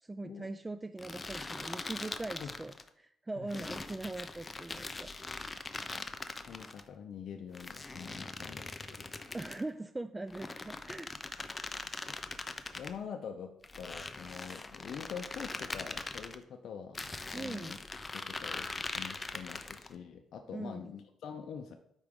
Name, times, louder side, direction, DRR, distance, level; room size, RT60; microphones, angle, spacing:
voice 1, 0.0-5.5 9.3-11.1 11.6-11.7 17.3-17.8 20.5-20.9, right 2 dB, 15° right, 11 dB, 0.3 m, -41 dB
sound 1, 1.0-2.9 3.5-6.8 7.5-9.7 10.3-12.9 13.6-16.4 16.9-19.9, left 3 dB, 25° left, 0.6 m, -42 dB
voice 2, 6.5-9.2 12.0-12.2 12.7-17.1 17.3-17.8 18.1-21.8, left 7 dB, 65° left, 4 dB, 0.6 m, -45 dB
12.5 x 4.9 x 3.7 m, 0.78 s
cardioid pair, 90°, 0 cm